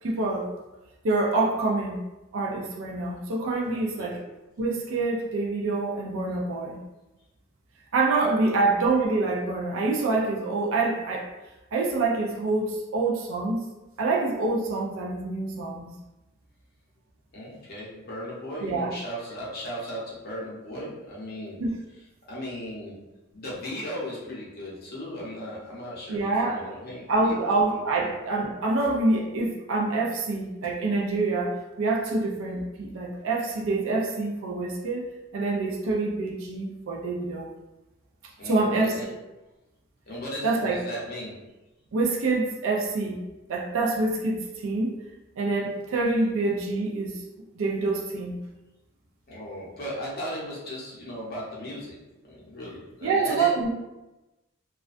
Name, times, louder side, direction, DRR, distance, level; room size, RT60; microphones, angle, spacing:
voice 1, 0.0-0.5 1.0-2.0 2.3-4.2 4.6-6.8 7.9-11.3 11.7-13.6 14.0-15.9 18.6-18.9 21.6-21.7 26.1-26.6 27.1-35.1 35.3-37.5 38.4-38.9 40.4-40.8 41.9-43.2 43.5-44.9 45.4-47.2 47.6-48.4 53.0-53.7, right 3 dB, 70° right, -1 dB, 0.4 m, -26 dB
voice 2, 3.6-4.1 8.3-8.5 17.3-21.6 22.3-23.0 23.3-28.1 38.4-39.0 40.1-41.3 49.3-52.0 52.2-53.6, equal, 45° left, -6 dB, 0.7 m, -37 dB
2.3 x 2.1 x 2.4 m, 1.0 s
head